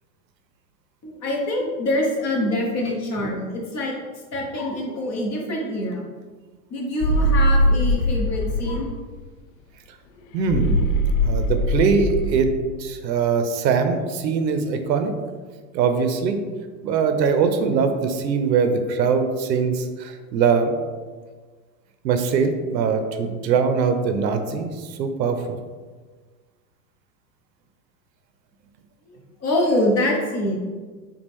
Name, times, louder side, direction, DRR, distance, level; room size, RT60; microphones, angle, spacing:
voice 1, 1.0-4.0 4.3-6.0 6.7-8.9 29.1-30.6, left 1 dB, 30° left, -1 dB, 1.0 m, -25 dB
sound 1, 7.0-8.8 10.5-12.5, equal, 55° left, 0.5 m, -21 dB
voice 2, 10.3-10.8 11.2-12.5 12.8-15.1 15.7-16.4 16.8-20.8 22.0-25.6, right 5 dB, 85° right, 7 dB, 0.7 m, -22 dB
5.4 x 2.4 x 3.4 m, 1.4 s
hypercardioid pair, 120°, 50 cm